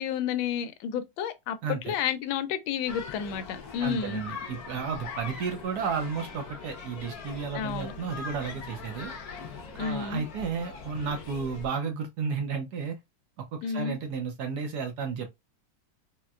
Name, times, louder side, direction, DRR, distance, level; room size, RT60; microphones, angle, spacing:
voice 1, 0.0-4.2 7.5-7.9 9.8-10.2 13.6-13.9, left 8 dB, 80° left, 1.4 m, -31 dB
voice 2, 1.6-1.9 3.8-9.1 9.7-13.0 13.4-15.3, right 6 dB, 65° right, 1.1 m, -33 dB
sound 1, 2.9-11.7, left 5 dB, 60° left, 1.1 m, -41 dB
4.3 x 2.1 x 2.3 m
omnidirectional pair, 2.1 m